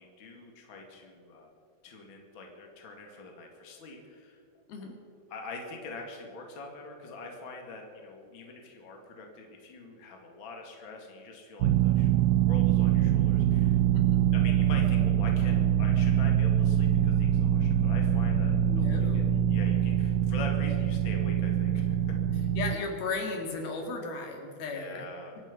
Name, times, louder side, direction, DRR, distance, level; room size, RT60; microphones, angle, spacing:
voice 1, 0.0-1.5 1.8-4.4 5.3-12.1 12.5-13.8 14.3-18.9 19.1-22.0 22.3-22.4 24.7-25.4, left 3 dB, 40° left, 1 dB, 2.6 m, -44 dB
sound 1, 11.6-22.7, right 10 dB, 80° right, 2.1 m, -24 dB
voice 2, 18.7-19.4 22.6-25.1, left 3 dB, 85° left, 2 dB, 4.1 m, -35 dB
25.5 x 9.9 x 5.4 m, 2.4 s
omnidirectional pair, 4.2 m